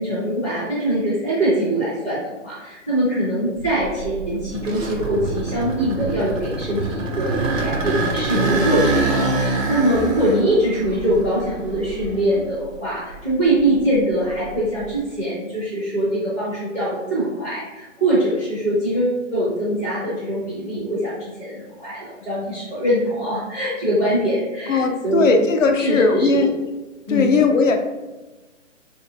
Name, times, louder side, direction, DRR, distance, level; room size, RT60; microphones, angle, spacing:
voice 1, 0.0-7.3 7.6-25.3 25.8-26.5 27.1-27.4, right 1 dB, ahead, -31 dB, 0.4 m, -23 dB
sound 1, 3.6-12.6 13.1-14.9, right 2 dB, 85° right, 0.8 m, -25 dB
voice 2, 24.7-26.5 27.1-27.8, left 3 dB, 75° left, 4 dB, 0.6 m, -18 dB
3.9 x 2.5 x 2.6 m, 1.2 s
hypercardioid pair, 155°, 38 cm